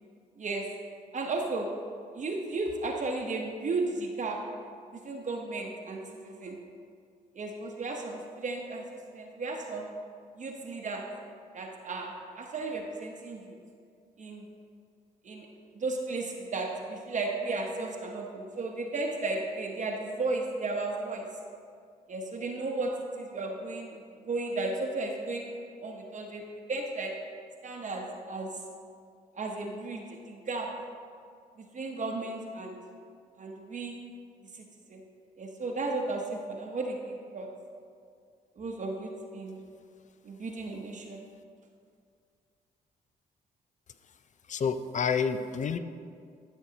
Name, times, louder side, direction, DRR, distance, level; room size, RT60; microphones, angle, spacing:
voice 1, 0.4-0.7 1.1-1.7 2.1-4.4 4.9-6.6 7.3-9.9 10.4-11.1 11.5-13.5 14.2-14.4 15.2-15.5 15.8-21.3 22.1-25.5 25.8-27.2 27.6-28.6 29.4-30.7 31.7-32.8 33.4-34.0 34.5-34.6 34.9-35.0 35.4-37.5 38.6-39.6 40.2-41.2, right 3 dB, 45° right, 1 dB, 0.9 m, -34 dB
voice 2, 44.5-45.8, left 6 dB, 45° left, 11 dB, 0.5 m, -29 dB
12.5 x 6.1 x 2.8 m, 2.2 s
supercardioid pair, 60°, 17 cm